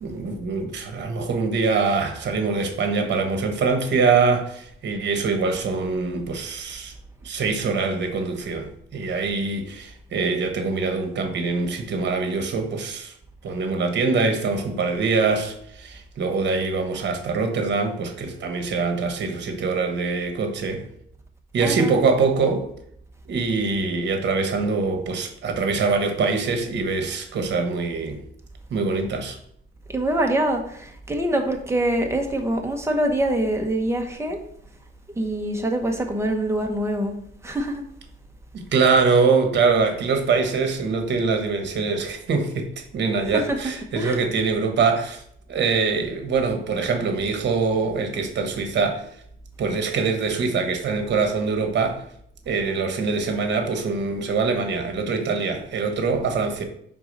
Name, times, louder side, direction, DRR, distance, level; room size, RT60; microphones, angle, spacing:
voice 1, 0.0-6.9 7.2-13.1 13.4-20.8 21.5-22.6 23.3-28.2 28.7-29.4 38.5-45.2 45.5-49.0 49.6-52.0 52.4-56.6, right 4 dB, 60° right, 1.2 m, -23 dB
voice 2, 21.6-22.1 29.9-34.4 35.2-37.2 37.4-37.8 38.7-38.9 43.3-44.2, right 1 dB, 15° right, 1.1 m, -25 dB
4.6 x 3.8 x 5.3 m
cardioid pair, 90°, 20 cm